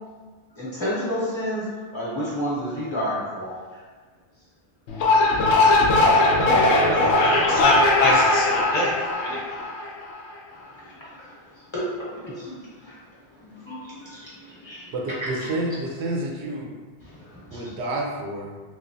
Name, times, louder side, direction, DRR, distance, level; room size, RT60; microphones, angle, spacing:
voice 1, 0.6-1.6 1.9-3.5 5.0-5.2 11.7-11.8 13.7-13.8 14.7-14.8 15.2-15.3, equal, 25° left, -9 dB, 1.0 m, -28 dB
sound 1, 4.9-10.2, left 2 dB, 85° left, 0.9 m, -19 dB
voice 2, 6.6-8.9 9.2-9.4, left 2 dB, 55° left, -5 dB, 0.8 m, -25 dB
voice 3, 14.9-16.8 17.5-18.5, right 1 dB, 80° right, -1 dB, 0.9 m, -29 dB
3.2 x 3.0 x 2.6 m, 1.4 s
omnidirectional pair, 1.1 m